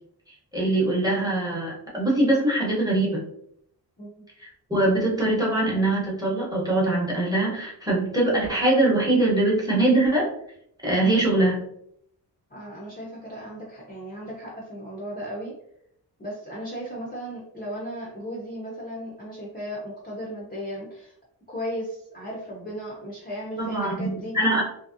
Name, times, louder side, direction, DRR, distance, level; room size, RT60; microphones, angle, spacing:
voice 1, 0.5-3.2 4.4-10.3 10.8-11.6 23.6-24.6, right 2 dB, 10° right, -5 dB, 0.8 m, -22 dB
voice 2, 12.5-15.5 16.2-21.1 21.5-24.3, equal, 25° left, -4 dB, 0.5 m, -36 dB
2.9 x 2.6 x 2.4 m, 0.71 s
wide cardioid pair, 170°, 40 cm